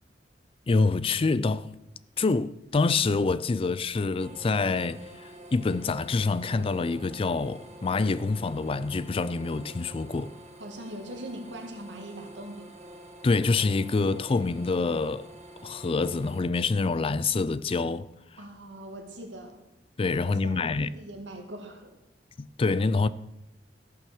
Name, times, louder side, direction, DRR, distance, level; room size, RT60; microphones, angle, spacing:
voice 1, 0.7-1.7 2.2-10.3 13.2-15.3 15.6-18.1 20.0-20.9 22.4-23.1, left 3 dB, 30° left, 0.4 m, -26 dB
sound 1, 4.2-16.4, right 1 dB, 40° right, 1.7 m, -48 dB
voice 2, 10.6-12.8 18.4-19.6 20.3-22.0, right 1 dB, 85° right, 2.1 m, -41 dB
14.0 x 5.6 x 7.0 m
head